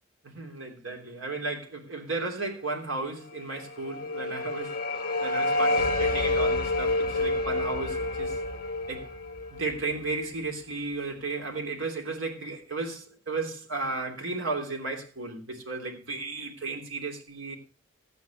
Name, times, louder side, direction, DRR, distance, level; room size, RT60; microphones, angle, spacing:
voice 1, 0.2-4.8 5.2-8.4 8.9-9.1 9.5-17.6, right 3 dB, 75° right, 3.0 m, -34 dB
sound 1, 3.5-10.6, left 2 dB, 45° left, 1.5 m, -29 dB
14.5 x 9.4 x 3.0 m
head